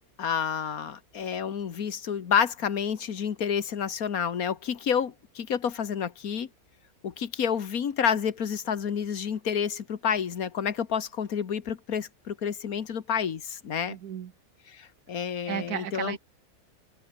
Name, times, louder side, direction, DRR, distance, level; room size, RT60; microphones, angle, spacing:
voice 1, 0.2-6.5 7.0-14.0 14.7-16.2, left 7 dB, 70° left, 1.8 m, -29 dB
voice 2, 13.9-14.3 15.5-16.2, right 9 dB, 85° right, 1.6 m, -34 dB
omnidirectional pair, 1.6 m